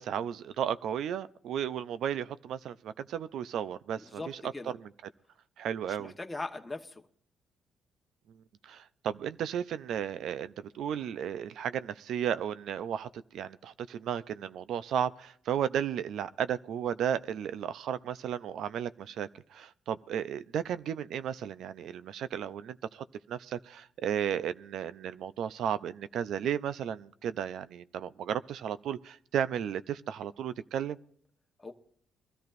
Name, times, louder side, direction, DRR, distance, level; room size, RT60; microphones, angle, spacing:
voice 1, 0.0-4.9 5.6-6.1 8.6-31.0, right 9 dB, 75° right, 0.5 m, -34 dB
voice 2, 4.0-4.7 6.0-7.0 31.6-31.7, left 2 dB, 15° left, 1.1 m, -40 dB
23.0 x 13.5 x 2.6 m
cardioid pair, 90°, 0 cm